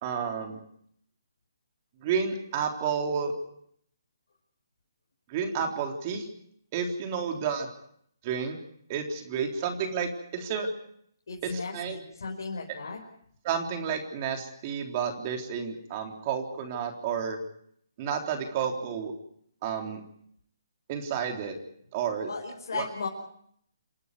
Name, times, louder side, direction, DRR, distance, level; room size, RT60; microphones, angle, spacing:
voice 1, 0.0-0.6 2.0-3.3 5.3-6.3 6.7-7.7 8.2-8.6 8.9-10.7 11.4-12.0 13.4-17.4 18.0-19.1 19.6-20.0 20.9-21.6 21.9-22.3 22.7-22.8, right 6 dB, 30° right, 3 dB, 3.7 m, -31 dB
voice 2, 11.3-13.0 22.2-23.1, left 4 dB, 70° left, 0 dB, 5.4 m, -36 dB
28.5 x 12.5 x 9.6 m, 0.68 s
hypercardioid pair, 155°, 2 cm